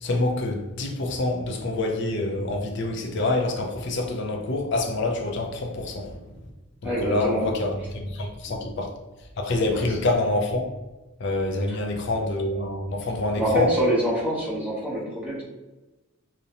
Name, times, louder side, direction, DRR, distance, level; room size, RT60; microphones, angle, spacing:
voice 1, 0.0-6.2 6.8-8.9 9.4-10.7 11.2-13.7, left 2 dB, 55° left, 2 dB, 0.4 m, -26 dB
voice 2, 6.8-7.5 8.5-8.7 9.7-9.8 11.7-11.8 13.4-15.4, equal, 5° right, -7 dB, 0.7 m, -25 dB
2.5 x 2.1 x 2.8 m, 1.1 s
head